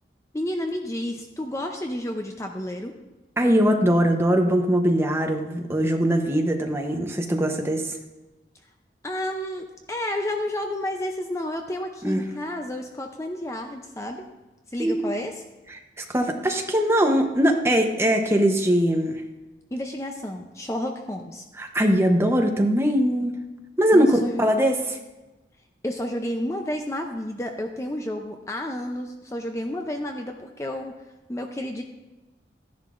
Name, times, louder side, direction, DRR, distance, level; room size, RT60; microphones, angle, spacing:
voice 1, 0.3-2.9 9.0-14.3 14.7-15.4 19.7-21.4 23.9-24.7 25.8-31.0 31.3-31.8, left 1 dB, 15° left, 3 dB, 0.5 m, -31 dB
voice 2, 3.4-8.0 12.0-12.2 14.8-15.0 16.0-19.2 21.6-23.3 23.8-24.7, equal, 15° right, 3 dB, 0.8 m, -21 dB
13.5 x 10.5 x 2.5 m, 1.1 s
head